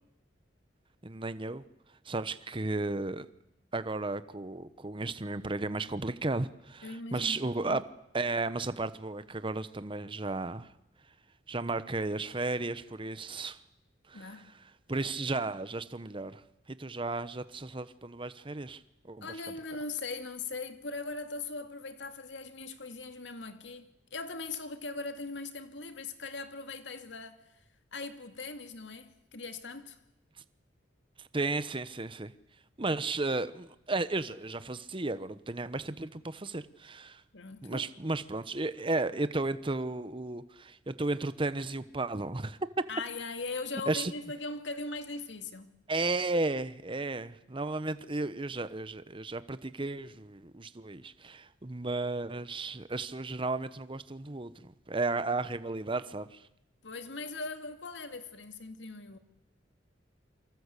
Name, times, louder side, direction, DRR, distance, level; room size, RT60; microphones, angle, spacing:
voice 1, 1.0-1.6 2.0-3.3 3.7-7.8 8.1-10.7 11.5-13.6 14.1-14.2 14.9-16.4 16.7-18.8 19.1-19.3 31.3-32.3 32.8-37.2 37.6-42.6 43.9-44.1 45.9-56.4, right 2 dB, 30° right, 1.0 m, -34 dB
voice 2, 6.8-7.8 14.1-14.5 19.2-27.6 27.9-30.0 37.3-37.9 42.9-45.8 56.8-59.2, left 3 dB, 75° left, 2.2 m, -40 dB
28.0 x 24.5 x 8.4 m
head